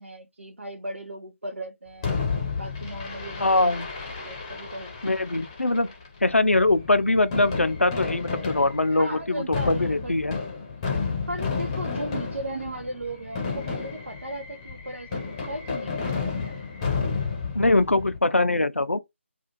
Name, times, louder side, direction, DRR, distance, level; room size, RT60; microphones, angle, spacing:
voice 1, 0.0-2.1 2.6-3.8 4.3-5.0 8.9-10.1 10.9-16.6, right 1 dB, 75° right, 0.6 m, -36 dB
Fireworks, 2.0-18.2, left 5 dB, 20° left, 0.7 m, -32 dB
voice 2, 3.4-3.9 5.0-5.9 6.2-10.4 17.5-19.0, left 2 dB, 85° left, 0.4 m, -22 dB
2.4 x 2.3 x 2.9 m
figure-of-eight pair, 150°, 7 cm